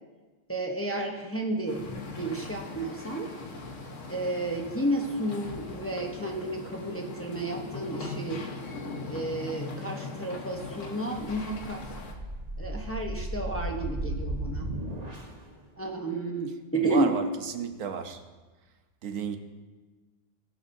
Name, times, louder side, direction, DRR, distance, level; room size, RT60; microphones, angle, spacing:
voice 1, 0.5-1.9 2.2-3.3 4.1-8.4 9.0-11.8 12.6-14.7 15.8-17.1, right 2 dB, 10° left, 0.9 m, -31 dB
sound 1, 1.7-12.1, left 3 dB, 70° left, 1.6 m, -40 dB
sound 2, 11.2-15.5, right 1 dB, 30° right, 1.2 m, -35 dB
voice 2, 16.8-18.2 19.0-19.4, right 7 dB, 80° right, 1.3 m, -33 dB
21.5 x 8.6 x 2.8 m
omnidirectional pair, 1.3 m